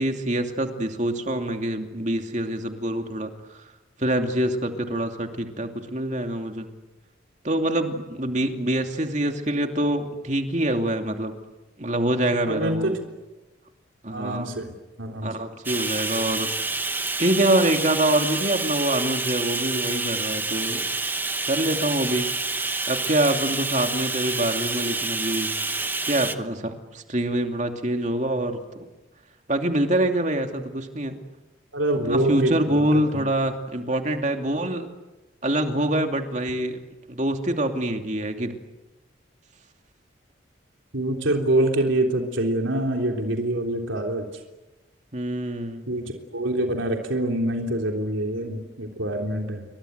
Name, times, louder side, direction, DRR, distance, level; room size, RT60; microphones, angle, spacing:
voice 1, 0.0-3.6 4.0-6.7 7.4-11.3 11.8-13.0 14.0-14.5 15.2-16.8 17.2-20.9 21.5-22.3 22.9-25.5 26.1-28.9 29.5-31.2 32.0-34.9 35.4-36.8 37.1-38.6 45.1-45.9, right 1 dB, 35° right, 5 dB, 2.8 m, -25 dB
voice 2, 12.5-13.0 14.1-15.3 31.7-33.2 40.9-44.3 45.9-49.7, right 1 dB, 80° right, 2 dB, 3.6 m, -25 dB
Bathtub (filling or washing), 15.6-26.3, right 3 dB, 10° right, 1.0 m, -28 dB
29.5 x 24.5 x 8.1 m, 1.1 s
head